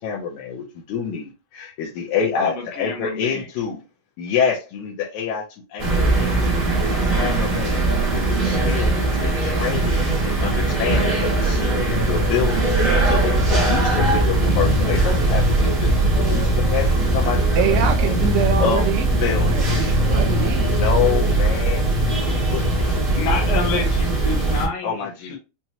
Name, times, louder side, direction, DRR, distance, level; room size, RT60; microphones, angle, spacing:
voice 1, 0.0-3.8 4.2-5.4 5.7-7.8 8.1-15.9 16.2-18.3 18.6-18.8 19.2-19.8 20.6-21.8 22.1-23.0 24.8-25.4, left 7 dB, 80° left, 2.1 m, -27 dB
voice 2, 2.4-3.5 23.1-25.4, left 3 dB, 65° left, 1.9 m, -28 dB
sound 1, 5.8-24.7, right 2 dB, 40° right, 0.7 m, -20 dB
voice 3, 17.6-20.7, right 8 dB, 75° right, 1.8 m, -25 dB
5.9 x 2.1 x 2.8 m
omnidirectional pair, 3.3 m